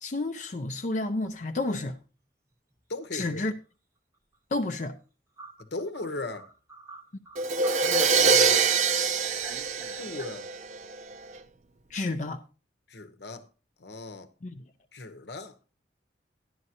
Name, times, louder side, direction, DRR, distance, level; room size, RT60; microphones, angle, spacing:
voice 1, 0.0-2.0 3.1-3.5 4.5-5.0 11.9-12.4 14.4-14.6, left 2 dB, 45° left, 0.5 m, -30 dB
sound 1, 1.1-1.4 1.6-1.7 2.0-2.1 3.0-3.3 5.4-10.3, right 3 dB, 15° right, 0.9 m, -47 dB
voice 2, 2.9-3.4 5.6-6.5 7.8-8.7 10.0-10.5 12.9-13.5 13.8-14.3 14.9-15.6, left 2 dB, 75° left, 0.9 m, -37 dB
Crash cymbal, 7.4-11.1, right 5 dB, 40° right, 0.5 m, -24 dB
12.0 x 11.0 x 2.9 m
head